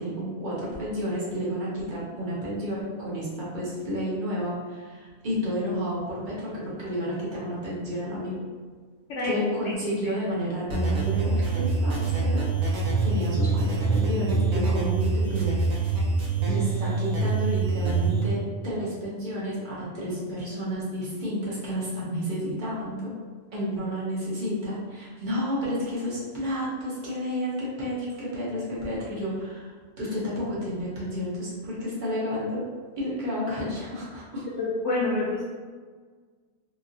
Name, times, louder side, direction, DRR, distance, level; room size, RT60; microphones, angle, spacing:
voice 1, 0.0-8.4 9.2-12.5 13.0-16.0 16.4-23.1 23.5-29.7 30.0-32.6 33.0-34.4, equal, 40° right, -8 dB, 0.9 m, -31 dB
sound 1, 10.7-18.2, right 3 dB, 80° right, 1.1 m, -25 dB
voice 2, 34.6-35.4, left 2 dB, 70° left, -6 dB, 0.9 m, -27 dB
3.0 x 2.6 x 2.6 m, 1.5 s
omnidirectional pair, 1.5 m